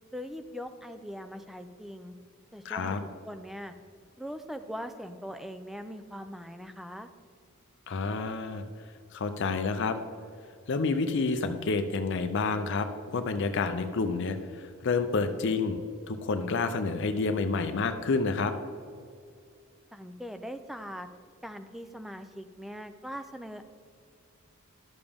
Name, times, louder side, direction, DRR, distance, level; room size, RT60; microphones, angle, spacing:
voice 1, 0.1-2.1 2.5-3.7 4.2-7.1 19.9-21.1 21.4-23.6, equal, ahead, 8 dB, 0.4 m, -41 dB
voice 2, 2.6-3.0 7.9-8.6 9.1-10.0 10.7-15.8 16.1-18.5, left 4 dB, 55° left, 8 dB, 0.5 m, -29 dB
11.5 x 6.9 x 3.5 m, 2.3 s
head